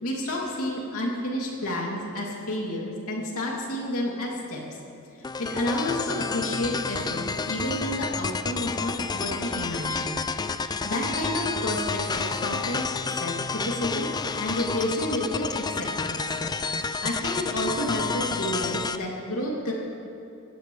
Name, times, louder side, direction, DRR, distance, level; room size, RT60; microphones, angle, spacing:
voice 1, 0.0-4.6 5.4-10.2 10.8-12.8 13.2-14.1 14.4-15.5 15.7-16.2 16.7-16.8 17.0-19.7, left 1 dB, 85° left, -3 dB, 2.7 m, -30 dB
sound 1, 5.2-19.0, left 4 dB, 20° left, 0.3 m, -30 dB
17.0 x 15.0 x 3.2 m, 2.5 s
head